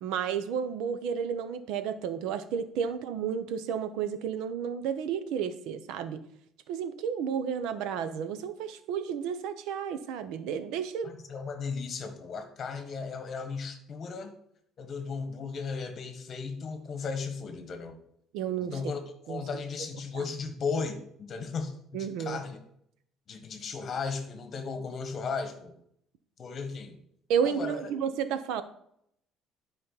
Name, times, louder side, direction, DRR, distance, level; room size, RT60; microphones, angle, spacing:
voice 1, 0.0-6.2 6.7-11.1 18.3-18.7 19.3-19.4 20.1-20.2 21.9-22.4 27.3-28.6, right 7 dB, 80° right, 11 dB, 0.8 m, -32 dB
voice 2, 11.0-14.3 14.8-18.0 18.6-19.0 19.3-22.6 23.3-25.7 26.4-27.0 27.4-27.9, left 5 dB, 35° left, 6 dB, 1.3 m, -36 dB
11.0 x 5.2 x 4.1 m, 0.71 s
cardioid pair, 150°, 0 cm